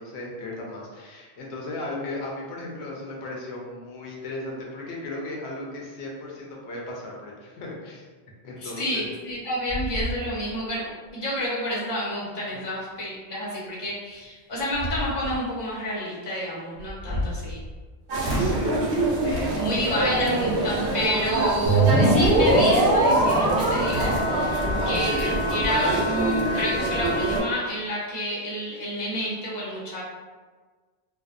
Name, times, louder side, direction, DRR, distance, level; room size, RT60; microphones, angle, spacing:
voice 1, 0.0-8.1 8.4-9.1 17.1-17.3 18.4-19.1 24.5-24.9, left 2 dB, 85° left, -2 dB, 0.9 m, -36 dB
voice 2, 8.6-17.6 19.2-24.6 24.9-30.0, equal, 30° left, -6 dB, 0.6 m, -29 dB
sound 1, 9.0-9.4 9.7-10.7 11.1-11.2 13.9-14.0 14.5-15.4 16.8-17.9 18.2-18.7 19.3-19.7 20.5-20.9 23.9-25.7, left 1 dB, 15° right, 0.9 m, -31 dB
sound 2, 18.1-27.4, right 2 dB, 85° right, 0.9 m, -25 dB
sound 3, 21.7-27.4, right 1 dB, 55° right, 0.6 m, -23 dB
2.5 x 2.0 x 2.4 m, 1.4 s
omnidirectional pair, 1.1 m